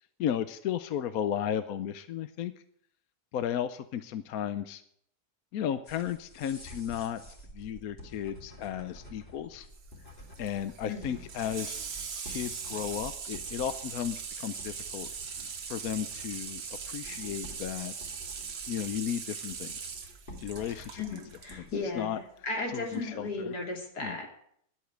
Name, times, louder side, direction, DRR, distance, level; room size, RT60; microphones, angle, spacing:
voice 1, 0.2-2.5 3.3-4.8 5.5-7.2 7.5-9.7 10.4-11.8 12.2-15.1 15.4-17.9 18.7-19.9 20.4-21.2 21.5-21.7 22.0-22.2 22.7-23.5 24.0-24.2, left 9 dB, 70° left, 11 dB, 1.1 m, -34 dB
sound 1, 5.9-21.9, equal, 30° left, 2.9 m, -50 dB
Water tap faucet / Sink (filling or washing), 9.7-21.6 22.9-23.0, right 6 dB, 65° right, 1.7 m, -40 dB
voice 2, 10.9-11.2 21.0-24.3, left 3 dB, 90° left, 1 dB, 3.4 m, -36 dB
11.0 x 8.3 x 9.1 m, 0.68 s
omnidirectional pair, 1.7 m